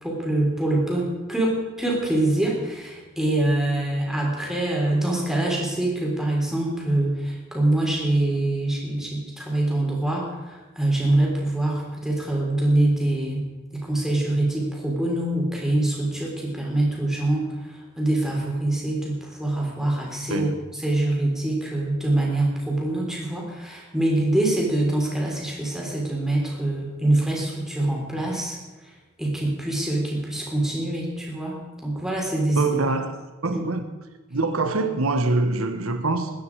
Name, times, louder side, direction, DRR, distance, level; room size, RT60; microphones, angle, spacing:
voice 1, 0.0-13.5 13.7-28.6 28.8-28.9 29.2-32.7 33.5-33.6, right 1 dB, ahead, 3.6 m, -24 dB
voice 2, 32.6-33.2 33.4-33.9 34.3-36.3, right 3 dB, 75° right, 1.4 m, -24 dB
21.0 x 9.8 x 4.8 m
head